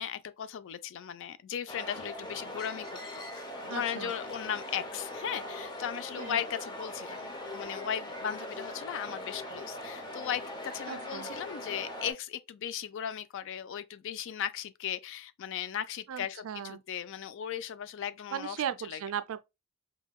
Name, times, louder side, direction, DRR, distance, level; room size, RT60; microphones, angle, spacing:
voice 1, 0.0-18.6 18.9-19.0, left 9 dB, 60° left, 0.3 m, -37 dB
sound 1, 1.7-12.1, left 1 dB, 20° left, 0.8 m, -41 dB
voice 2, 3.7-4.1 6.2-6.4 10.9-11.3 16.1-16.8 18.3-19.4, right 9 dB, 65° right, 0.4 m, -37 dB
5.3 x 2.2 x 2.2 m
head